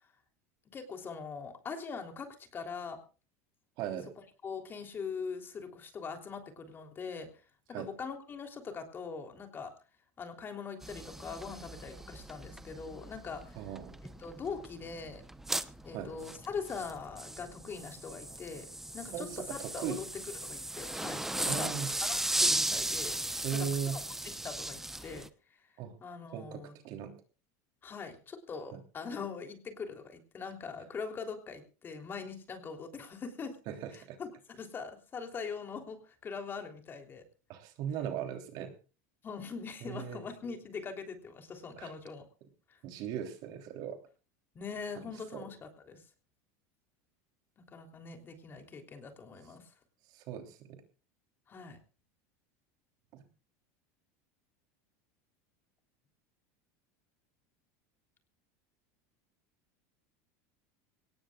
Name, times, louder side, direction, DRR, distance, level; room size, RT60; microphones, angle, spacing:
voice 1, 0.7-3.0 4.4-7.3 7.8-9.7 10.2-13.6 14.2-15.2 15.8-18.7 18.9-20.1 20.4-21.7 22.0-23.2 23.5-25.3 26.0-26.8 27.8-33.6 33.9-37.2 39.2-42.2 42.7-42.8 44.6-46.0 47.7-49.7 51.5-51.8, left 5 dB, 25° left, 5 dB, 3.3 m, -42 dB
voice 2, 3.8-4.1 7.7-7.9 13.6-14.0 15.9-16.1 19.1-20.0 21.4-21.9 23.4-24.0 25.8-25.9 26.3-27.1 33.7-34.2 37.5-38.7 39.8-40.2 41.8-41.9 42.8-44.0 45.0-45.4 50.1-50.8 53.1-53.2, right 8 dB, 55° right, 5 dB, 3.2 m, -38 dB
sound 1, 10.8-25.3, right 1 dB, 5° right, 0.8 m, -37 dB
23.0 x 18.5 x 2.4 m, 0.35 s
supercardioid pair, 130°, 8 cm